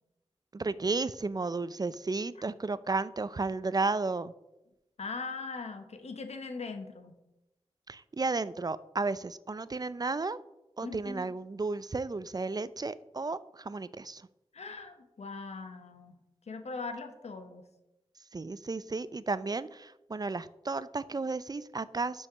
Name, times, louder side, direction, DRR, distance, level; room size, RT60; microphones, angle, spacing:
voice 1, 0.5-4.3 7.9-10.4 10.8-14.2 18.3-22.3, right 3 dB, 35° right, 16 dB, 0.4 m, -33 dB
voice 2, 5.0-7.2 10.8-11.3 14.5-16.2 16.5-17.7, left 4 dB, 80° left, 8 dB, 1.0 m, -40 dB
6.3 x 5.8 x 5.7 m, 0.92 s
cardioid pair, 40°, 11 cm